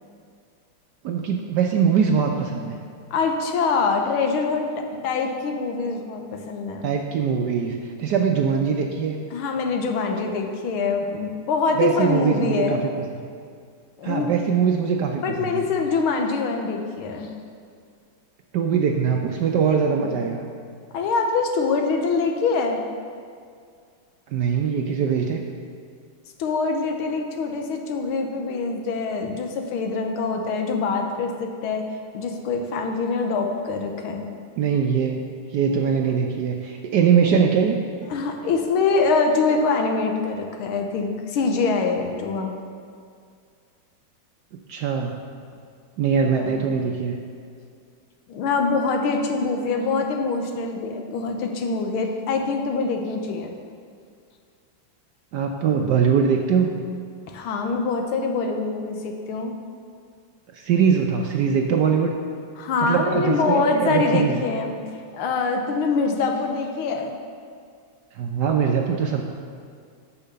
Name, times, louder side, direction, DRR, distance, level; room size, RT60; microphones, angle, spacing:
voice 1, 1.0-2.8 6.8-9.2 11.8-12.9 14.0-15.6 18.5-20.4 24.3-25.4 34.6-37.8 44.7-45.2 46.0-47.1 55.3-56.7 60.5-62.2 62.8-64.4 68.1-69.2, right 6 dB, 70° right, 2 dB, 1.0 m, -22 dB
voice 2, 3.1-7.0 9.3-12.8 14.0-14.3 15.1-17.3 20.9-22.8 26.4-31.9 32.1-34.3 38.1-42.5 46.4-46.5 48.3-53.6 57.3-59.6 62.6-64.7 65.1-67.2, left 4 dB, 80° left, 4 dB, 1.7 m, -24 dB
8.5 x 5.8 x 6.6 m, 2.3 s
omnidirectional pair, 2.3 m